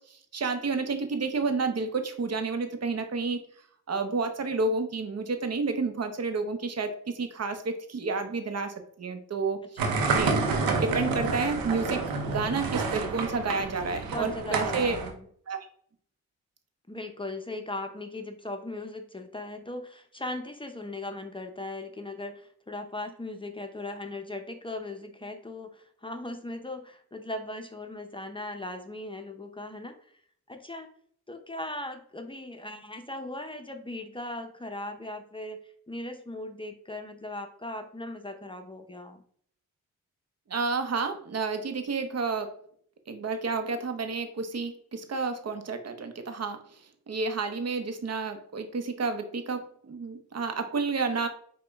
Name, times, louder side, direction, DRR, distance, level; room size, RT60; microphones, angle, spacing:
voice 1, 0.1-3.4 3.9-9.6 10.1-10.4 10.7-15.0 15.5-15.6 40.5-42.6 43.1-46.6 47.1-51.3, right 4 dB, 45° right, 8 dB, 0.8 m, -30 dB
voice 2, 9.8-10.3 14.1-15.3 16.9-30.0 30.5-30.9 31.3-39.2, left 2 dB, 15° left, 6 dB, 0.6 m, -38 dB
sound 1, 9.8-15.1, right 4 dB, 90° right, 0.7 m, -29 dB
4.8 x 2.3 x 3.5 m, 0.62 s
supercardioid pair, 50°, 35 cm